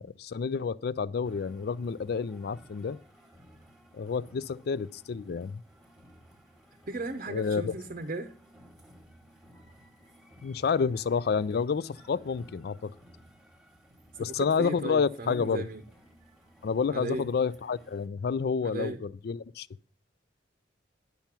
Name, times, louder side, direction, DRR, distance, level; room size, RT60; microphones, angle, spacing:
voice 1, 0.0-3.0 3.9-5.6 7.3-7.7 10.4-12.9 14.2-15.7 16.6-19.7, left 5 dB, 60° left, 0.4 m, -29 dB
sound 1, 1.2-18.1, equal, 5° right, 1.4 m, -57 dB
voice 2, 6.9-8.3 14.1-15.8 16.9-17.3 18.6-19.0, right 2 dB, 45° right, 0.7 m, -36 dB
10.5 x 5.6 x 5.9 m
head